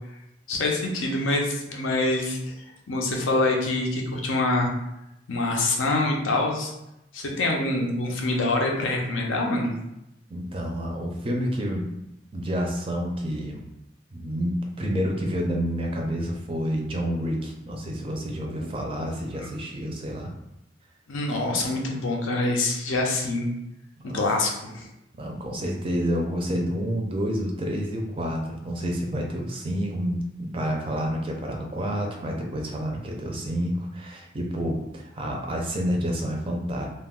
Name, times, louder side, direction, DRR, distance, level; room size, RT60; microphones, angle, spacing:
voice 1, 0.5-4.7 5.3-6.7 7.1-9.7 18.4-18.7 21.1-23.5 24.1-24.9, left 2 dB, 85° left, 0 dB, 0.5 m, -25 dB
voice 2, 10.3-11.9 12.3-13.6 14.1-20.3 24.0-24.2 25.1-36.9, equal, 25° right, 0 dB, 0.4 m, -29 dB
2.3 x 2.1 x 3.5 m, 0.87 s
head